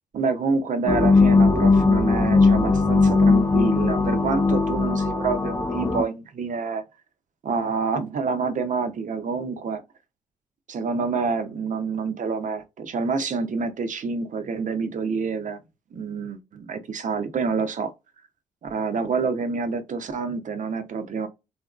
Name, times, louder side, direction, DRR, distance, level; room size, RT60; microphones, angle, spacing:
voice 1, 0.1-6.8 7.4-9.8 10.7-15.6 15.9-17.9 18.6-21.3, right 4 dB, 50° right, 0.7 m, -27 dB
sound 1, 0.9-6.0, left 3 dB, 20° left, 0.6 m, -19 dB
2.7 x 2.5 x 2.4 m
supercardioid pair, 50°, 16 cm